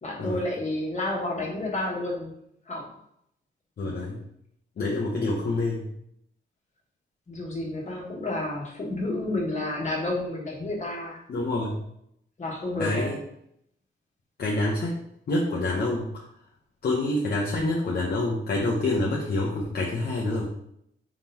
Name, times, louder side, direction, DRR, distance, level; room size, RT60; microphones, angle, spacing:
voice 1, 0.0-2.3 2.7-2.9 7.3-11.2 12.4-13.2, left 2 dB, 35° left, -2 dB, 1.5 m, -30 dB
voice 2, 3.8-4.2 4.8-5.8 11.3-11.7 12.8-13.1 14.4-15.0 15.3-16.1 16.8-20.5, left 2 dB, 50° left, -3 dB, 0.8 m, -27 dB
4.8 x 3.7 x 2.9 m, 0.73 s
wide cardioid pair, 120°, 20 cm